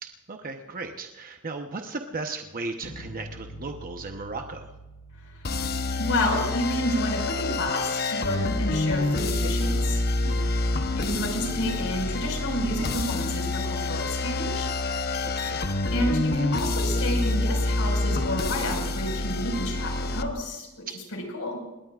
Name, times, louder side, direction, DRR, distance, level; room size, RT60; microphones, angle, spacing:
voice 1, 0.0-4.7 10.2-10.5 15.2-15.6 20.9-21.0, right 3 dB, 40° right, 4 dB, 1.0 m, -36 dB
sound 1, 2.8-8.8, equal, 85° left, 2.3 m, -47 dB
sound 2, 5.4-20.3, left 2 dB, 45° left, 0.9 m, -27 dB
voice 2, 6.0-10.0 10.9-14.7 15.9-21.6, left 1 dB, 65° left, 2 dB, 5.2 m, -30 dB
27.0 x 21.0 x 2.5 m, 1.0 s
head